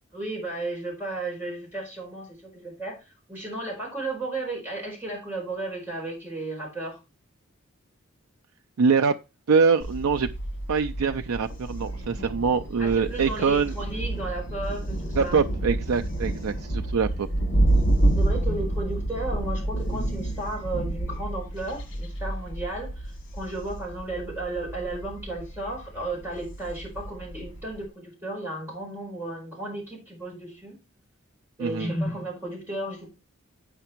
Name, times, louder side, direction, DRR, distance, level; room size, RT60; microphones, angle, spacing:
voice 1, 0.1-7.0 12.8-15.4 18.0-30.8 31.6-33.1, right 2 dB, 10° right, 4.6 m, -34 dB
voice 2, 8.8-9.2 9.5-10.3 10.7-13.7 15.2-17.3 31.6-31.9, right 5 dB, 85° right, 0.5 m, -24 dB
Thunder, 9.8-27.9, right 1 dB, 60° left, 1.6 m, -29 dB
8.7 x 5.8 x 4.5 m
head